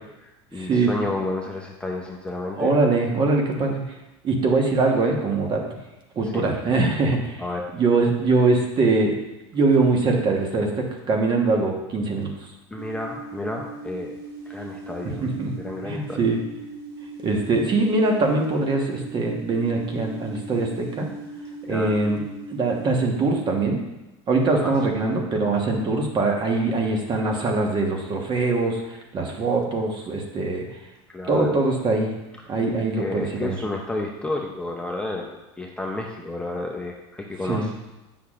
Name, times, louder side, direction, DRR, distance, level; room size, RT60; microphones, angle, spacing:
voice 1, 0.0-2.7 6.3-6.5 7.4-7.7 12.7-14.2 14.5-15.2 15.6-16.2 21.6-21.9 24.6-24.9 31.1-31.6 33.0-37.7, left 2 dB, 5° left, 0 dB, 0.6 m, -31 dB
voice 2, 0.6-0.9 2.5-3.8 4.2-5.6 6.2-7.4 7.7-9.2 9.5-12.3 15.2-15.6 15.8-16.4 17.2-21.1 21.7-22.2 22.5-23.8 24.3-30.7 31.3-32.1 32.5-33.6 37.4-37.7, right 3 dB, 35° right, 1 dB, 1.2 m, -22 dB
sound 1, 12.8-22.9, right 2 dB, 75° right, 1.7 m, -39 dB
8.4 x 5.7 x 2.5 m, 1.0 s
supercardioid pair, 115°, 14 cm